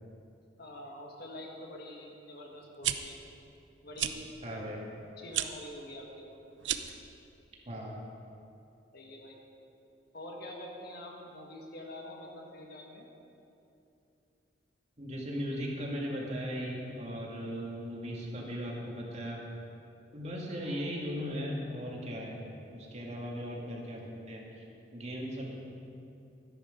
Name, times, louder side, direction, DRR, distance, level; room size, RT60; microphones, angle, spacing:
voice 1, 0.6-3.2 3.8-4.7 5.2-6.4 8.9-9.4 10.1-13.1 20.6-20.9 23.4-23.5, left 1 dB, 60° left, 0 dB, 1.9 m, -46 dB
sound 1, 2.6-2.9 3.9-4.1 5.3-5.5 6.6-7.0, right 11 dB, 85° right, 0.6 m, -31 dB
voice 2, 4.4-4.8 7.7-8.0 15.0-19.4 20.1-24.7 24.9-25.6, equal, 40° right, -2 dB, 2.2 m, -38 dB
13.0 x 10.5 x 5.3 m, 2.7 s
head